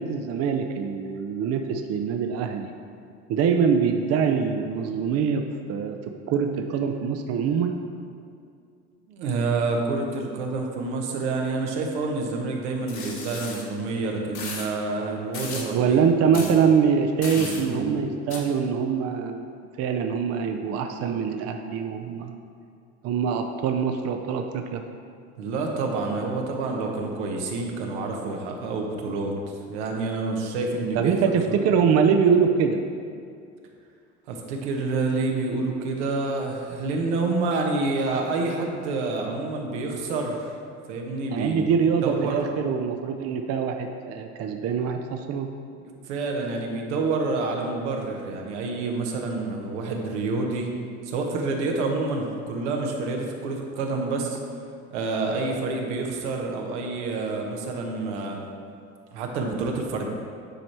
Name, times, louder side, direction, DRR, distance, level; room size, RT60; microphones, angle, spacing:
voice 1, 0.0-2.7 3.3-5.4 5.7-7.8 15.5-19.5 19.8-22.3 23.0-24.8 30.9-32.8 41.3-45.5, right 6 dB, 45° right, 5 dB, 0.5 m, -24 dB
voice 2, 9.1-16.0 16.3-16.5 17.3-17.9 25.4-29.3 29.7-31.1 31.5-31.6 34.3-40.5 40.9-41.7 42.0-42.4 45.8-50.7 51.0-54.4 54.9-58.4 59.1-60.1, right 3 dB, 85° right, 1 dB, 1.0 m, -28 dB
sound 1, 12.9-13.6 14.3-14.7 15.3-15.7 16.3-16.5 17.2-17.6 18.3-18.4, left 4 dB, 55° left, 1.5 m, -35 dB
9.1 x 3.2 x 4.3 m, 2.3 s
supercardioid pair, 85°, 34 cm